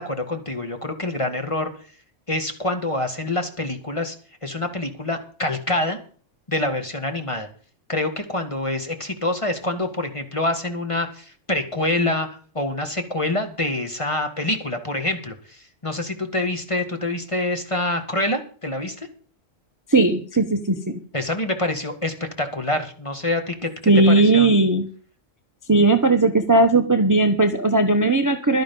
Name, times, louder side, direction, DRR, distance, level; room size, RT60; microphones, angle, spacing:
voice 1, 0.0-1.7 2.3-4.2 4.4-6.0 6.5-7.5 7.9-12.3 12.5-19.1 21.1-23.7 24.1-24.5, left 2 dB, 25° left, 6 dB, 1.9 m, -26 dB
voice 2, 19.9-21.0 23.9-24.9 25.7-28.6, right 2 dB, 15° right, 7 dB, 0.9 m, -17 dB
12.0 x 10.5 x 5.4 m, 0.43 s
omnidirectional pair, 1.3 m